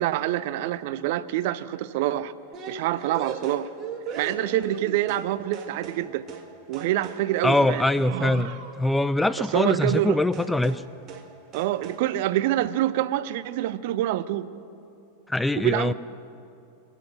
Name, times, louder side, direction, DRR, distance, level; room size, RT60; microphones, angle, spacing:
voice 1, 0.0-2.3 2.7-3.7 4.2-6.2 6.7-8.6 9.4-10.3 11.5-14.5 15.6-15.9, right 14 dB, 50° right, 16 dB, 0.5 m, -26 dB
sound 1, 2.5-5.3 5.5-6.0 6.3-6.5 6.7-8.8 9.9-10.1 10.3-10.8 11.1-11.3 11.5-12.0, right 6 dB, 30° right, 1.7 m, -38 dB
voice 2, 7.4-10.8 15.3-15.9, left 2 dB, 5° left, 15 dB, 0.3 m, -23 dB
24.0 x 8.3 x 6.5 m, 2.7 s
figure-of-eight pair, 90°, 0 cm